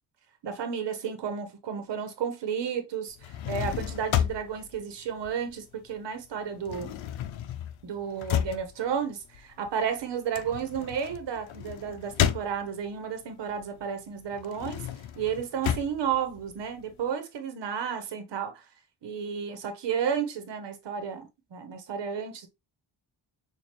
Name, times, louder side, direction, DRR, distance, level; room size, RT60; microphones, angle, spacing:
voice 1, 0.4-7.0 7.8-14.8 15.1-18.6 19.0-22.5, right 7 dB, 65° right, 1.1 m, -32 dB
sound 1, 3.1-5.9 6.2-13.0 13.5-17.0, left 10 dB, 90° left, 0.7 m, -32 dB
6.7 x 2.6 x 3.1 m
cardioid pair, 125°, 45 cm